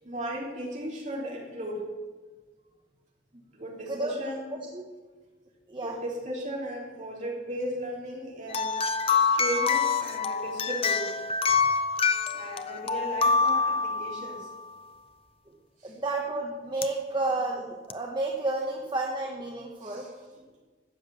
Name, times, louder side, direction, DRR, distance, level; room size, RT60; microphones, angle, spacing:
voice 1, 0.0-1.8 3.5-4.6 5.8-11.2 11.5-11.6 12.3-14.5 15.8-16.0 19.8-20.4, equal, 45° right, -2 dB, 3.2 m, -36 dB
sound 1, 8.5-14.5 16.8-16.9 17.9-18.0, left 5 dB, 35° left, 0.6 m, -26 dB
voice 2, 15.8-20.1, right 2 dB, 25° right, 0 dB, 1.1 m, -31 dB
13.0 x 8.8 x 6.9 m, 1.4 s
head